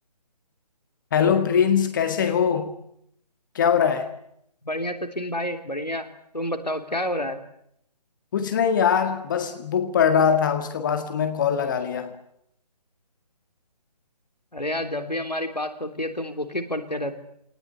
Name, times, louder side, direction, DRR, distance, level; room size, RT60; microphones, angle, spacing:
voice 1, 1.1-2.7 3.6-4.1 8.3-12.1, left 7 dB, 30° left, 1.9 m, -22 dB
voice 2, 4.6-6.1 6.3-7.4 14.5-17.2, left 1 dB, 85° left, 3.3 m, -29 dB
26.0 x 19.0 x 9.9 m
figure-of-eight pair, 145°, 21 cm